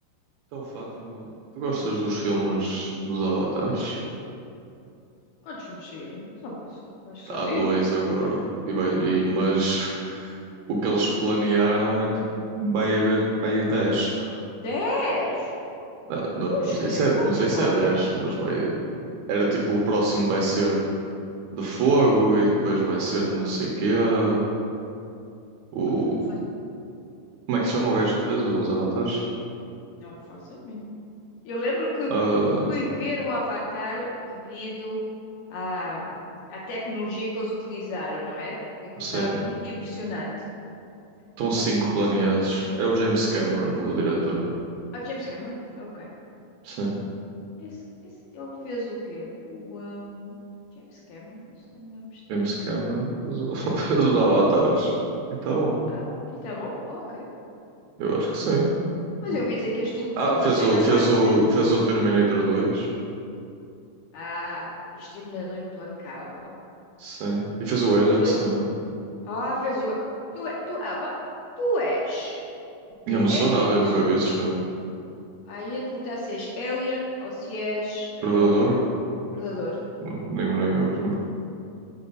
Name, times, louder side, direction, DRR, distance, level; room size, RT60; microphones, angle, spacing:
voice 1, 0.5-1.3 1.6-4.0 7.3-8.4 8.7-10.4 10.7-12.2 12.6-14.3 16.1-18.7 19.3-20.8 21.5-24.4 25.7-26.2 27.5-29.2 32.1-32.6 39.0-39.3 41.4-44.4 46.6-46.9 52.3-54.9 55.4-55.8 58.0-58.7 60.2-62.9 67.0-68.7 73.1-74.6 78.2-78.8 80.1-81.2, right 2 dB, 75° right, -3 dB, 2.3 m, -23 dB
voice 2, 5.4-6.8 7.0-7.8 9.0-9.1 14.6-15.6 16.5-18.1 25.8-26.4 29.9-30.9 31.4-32.1 32.6-35.0 35.5-36.2 36.5-38.5 39.0-40.3 42.0-42.1 44.9-46.1 47.6-47.8 48.3-50.4 50.8-52.6 53.6-54.1 55.9-56.1 56.4-57.3 59.2-61.4 64.1-64.6 64.9-66.5 68.0-68.3 69.2-69.9 70.3-71.1 71.6-72.4 73.1-74.0 75.5-78.9 79.3-79.8, left 1 dB, 75° left, -5 dB, 2.3 m, -32 dB
7.7 x 4.8 x 5.4 m, 2.6 s
omnidirectional pair, 5.1 m